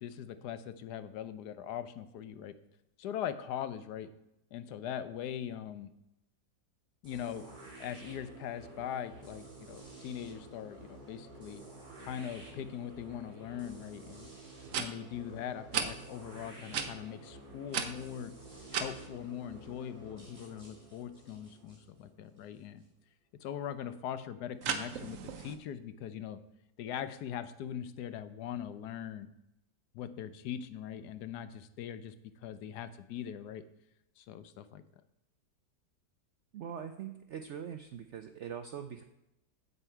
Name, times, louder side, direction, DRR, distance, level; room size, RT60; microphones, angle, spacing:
voice 1, 0.0-2.6 3.0-4.1 4.5-5.9 7.0-7.5 7.8-11.6 12.0-14.3 14.8-18.3 18.7-22.8 23.3-26.4 26.8-29.3 29.9-33.7 34.2-34.8, left 9 dB, 80° left, 12 dB, 1.2 m, -41 dB
sound 1, 7.0-22.9, right 2 dB, 25° right, 2.7 m, -51 dB
sound 2, 13.9-14.0 14.6-14.9 15.7-15.9 16.7-16.9 17.7-18.9 24.6-25.6, right 7 dB, 60° right, 1.1 m, -34 dB
voice 2, 36.5-39.0, right 8 dB, 75° right, 8 dB, 0.6 m, -42 dB
8.2 x 7.8 x 4.5 m, 0.88 s
omnidirectional pair, 1.8 m